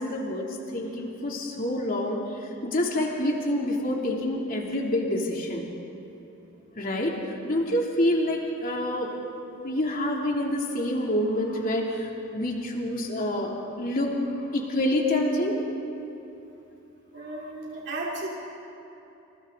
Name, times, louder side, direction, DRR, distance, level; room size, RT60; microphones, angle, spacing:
voice 1, 0.0-5.7 6.8-9.1 9.6-15.6 17.2-17.5, left 1 dB, 40° left, -1 dB, 3.1 m, -27 dB
voice 2, 17.1-18.3, right 2 dB, 55° right, -3 dB, 3.0 m, -34 dB
29.0 x 28.5 x 4.0 m, 2.9 s
head